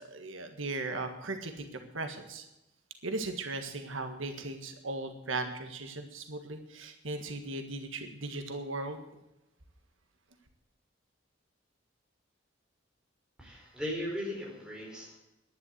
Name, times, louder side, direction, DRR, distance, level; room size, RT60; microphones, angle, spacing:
voice 1, 0.0-1.6 1.9-2.5 3.0-9.0, right 2 dB, 85° right, 6 dB, 1.7 m, -37 dB
voice 2, 13.4-15.2, equal, 5° right, -3 dB, 4.8 m, -37 dB
11.0 x 10.5 x 8.1 m, 0.92 s
head